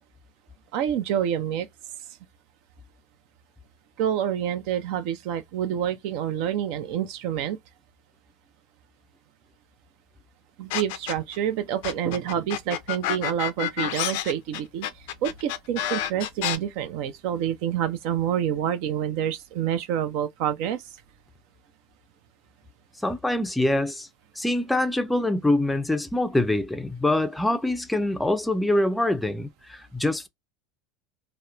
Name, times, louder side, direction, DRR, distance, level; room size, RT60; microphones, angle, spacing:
voice 1, 0.7-1.7 4.0-7.6 10.6-20.8, right 10 dB, 65° right, 0.5 m, -27 dB
sound 1, 10.7-11.4 11.8-16.6, left 12 dB, 70° left, 0.4 m, -29 dB
voice 2, 23.0-24.1 24.4-30.3, left 1 dB, 5° left, 0.4 m, -24 dB
2.9 x 2.0 x 2.3 m
supercardioid pair, 105°, 0 cm